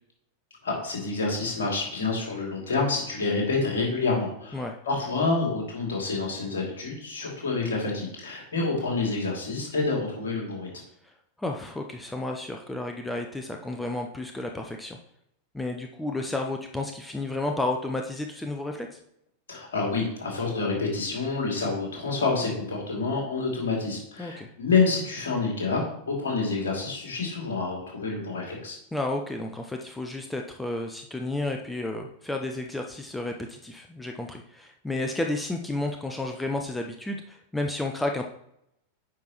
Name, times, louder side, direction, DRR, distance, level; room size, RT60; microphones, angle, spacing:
voice 1, 0.6-10.7 19.5-28.8, left 3 dB, 65° left, -2 dB, 2.5 m, -28 dB
voice 2, 11.4-15.0 15.5-19.0 24.2-24.5 28.9-38.2, left 2 dB, 5° left, 2 dB, 0.6 m, -32 dB
9.3 x 5.2 x 3.0 m, 0.77 s
figure-of-eight pair, 90°, 0 cm